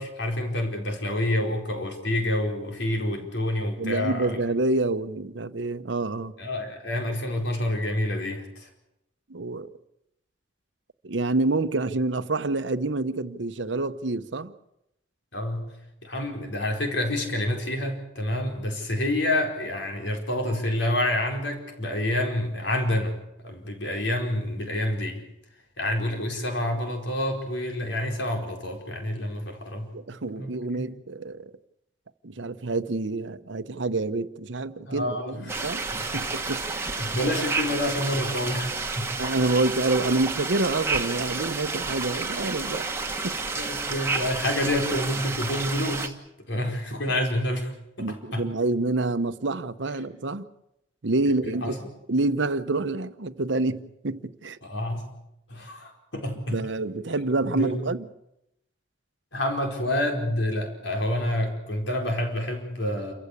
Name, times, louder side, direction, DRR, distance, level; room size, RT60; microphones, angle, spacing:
voice 1, 0.0-4.4 6.4-8.7 15.3-15.8 16.0-23.1 23.4-25.2 25.8-29.9 30.3-30.8 34.8-35.7 36.1-36.2 37.0-39.1 43.6-46.1 46.5-48.5 51.6-51.8 54.6-55.0 55.5-56.7 57.5-57.8 59.3-63.1, left 1 dB, 75° left, 4.7 m, -28 dB
voice 2, 3.8-6.3 9.3-9.7 11.0-14.5 29.9-31.4 32.2-35.8 36.1-37.3 39.2-42.8 43.2-43.4 48.0-50.4 51.0-51.8 52.1-54.6 56.5-58.1, right 2 dB, 75° right, 0.9 m, -27 dB
sound 1, 35.5-46.1, right 4 dB, 15° right, 1.4 m, -30 dB
28.0 x 15.0 x 8.5 m
head